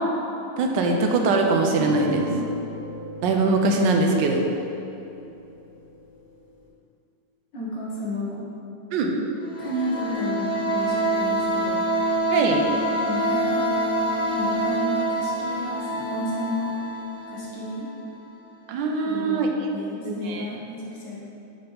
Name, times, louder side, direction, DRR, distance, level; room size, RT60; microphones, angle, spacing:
voice 1, 0.6-2.3 3.2-4.4 8.9-9.1 12.3-12.6 18.7-19.5 20.0-20.5, right 3 dB, 80° right, 2 dB, 1.2 m, -22 dB
sound 1, 1.8-6.7, equal, 35° right, 1.0 m, -38 dB
voice 2, 2.0-2.5 7.5-8.4 9.6-11.9 13.0-13.6 14.3-16.7 17.3-17.9 19.0-21.2, left 1 dB, 70° left, -7 dB, 2.1 m, -32 dB
sound 2, 9.4-18.0, right 1 dB, 55° left, 1.4 m, -26 dB
5.7 x 3.4 x 5.4 m, 2.8 s
omnidirectional pair, 2.0 m